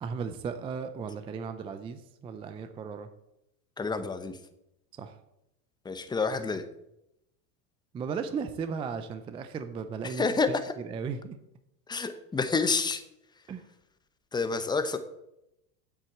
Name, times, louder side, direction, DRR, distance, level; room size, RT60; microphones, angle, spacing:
voice 1, 0.0-3.1 5.0-5.1 7.9-10.2 10.8-11.4 13.5-13.6, right 6 dB, 15° right, 10 dB, 0.4 m, -36 dB
voice 2, 3.8-4.4 5.8-6.6 10.0-10.7 11.9-13.0 14.3-15.0, left 4 dB, 10° left, 9 dB, 0.8 m, -28 dB
8.0 x 7.4 x 7.1 m, 0.85 s
supercardioid pair, 125°, 46 cm